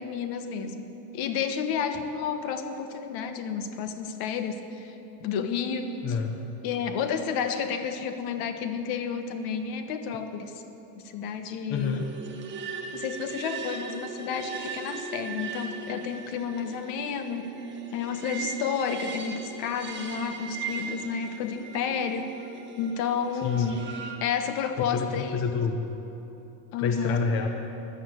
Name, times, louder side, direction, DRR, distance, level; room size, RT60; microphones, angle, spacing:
voice 1, 0.0-5.9 6.6-10.6 11.0-12.0 12.9-17.6 17.9-22.3 22.8-23.9 24.2-25.4 26.7-27.2, left 6 dB, 50° left, 8 dB, 1.3 m, -31 dB
voice 2, 6.0-6.4 11.7-12.0 23.4-23.8 24.8-25.8 26.8-27.5, left 6 dB, 30° left, 4 dB, 0.8 m, -28 dB
sound 1, 11.7-24.2, right 5 dB, 25° right, 1.6 m, -39 dB
14.5 x 11.5 x 8.6 m, 3.0 s
cardioid pair, 165°, 45 cm